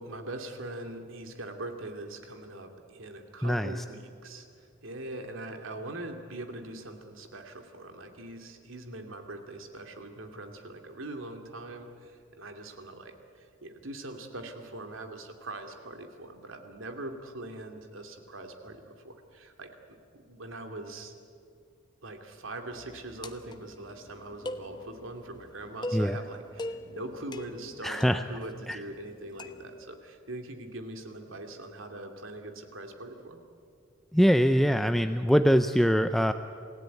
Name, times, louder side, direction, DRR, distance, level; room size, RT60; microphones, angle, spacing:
voice 1, 0.0-19.7 20.1-21.2 22.0-33.4, right 2 dB, 85° right, 5 dB, 2.6 m, -42 dB
voice 2, 3.4-3.7 25.9-26.2 27.8-28.2 28.7-28.8 34.1-36.3, equal, ahead, 8 dB, 0.5 m, -23 dB
sound 1, 22.7-29.8, left 1 dB, 20° left, 1.0 m, -42 dB
27.5 x 17.0 x 9.2 m, 2.3 s
head